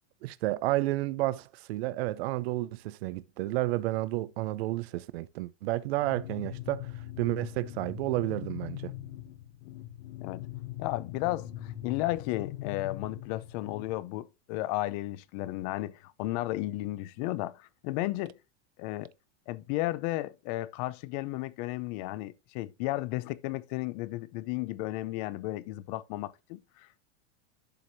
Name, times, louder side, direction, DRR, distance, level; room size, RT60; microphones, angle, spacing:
voice 1, 0.2-6.9 7.2-8.9, right 17 dB, 60° right, 0.6 m, -31 dB
sound 1, 6.0-13.9, left 13 dB, 70° left, 0.9 m, -41 dB
voice 2, 10.8-18.3 18.8-19.1 19.5-26.9, left 17 dB, 35° left, 0.5 m, -34 dB
11.5 x 4.8 x 2.7 m
supercardioid pair, 165°, 35 cm